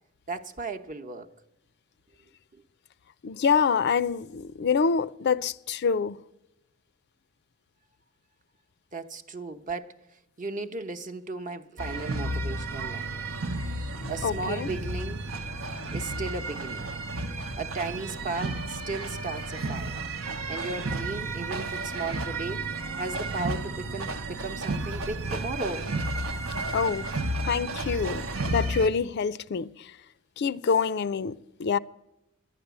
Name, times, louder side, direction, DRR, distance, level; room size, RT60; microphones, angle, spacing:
voice 1, 0.3-1.3 2.5-2.6 8.9-10.0 10.4-13.2 14.1-15.2 15.9-16.9 17.6-20.0 20.5-22.6 23.0-25.9, right 3 dB, 40° right, 0.8 m, -35 dB
voice 2, 3.2-6.2 14.0-14.7 26.7-27.1 27.4-29.7 30.4-31.8, left 6 dB, 55° left, 0.4 m, -26 dB
sound 1, 11.8-28.9, right 2 dB, 80° right, 0.9 m, -32 dB
11.0 x 10.5 x 8.0 m
head